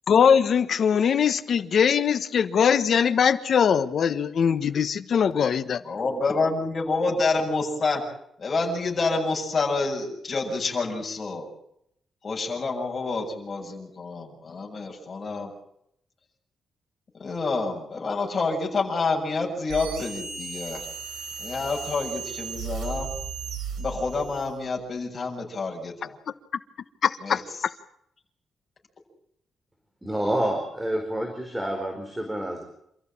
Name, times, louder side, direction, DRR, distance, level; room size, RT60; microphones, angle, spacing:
voice 1, 0.1-5.8 27.0-27.4, left 7 dB, 55° left, 11 dB, 1.3 m, -21 dB
voice 2, 5.8-8.0 8.4-11.5 12.2-15.5 17.2-20.9 21.4-23.1 23.8-26.2 27.2-27.4, left 3 dB, 35° left, -1 dB, 7.4 m, -28 dB
sound 1, 19.7-24.6, right 5 dB, 85° right, 6.8 m, -35 dB
voice 3, 30.0-32.6, right 1 dB, 10° right, 3 dB, 4.7 m, -28 dB
28.0 x 15.0 x 8.8 m, 0.74 s
wide cardioid pair, 140°, 0 cm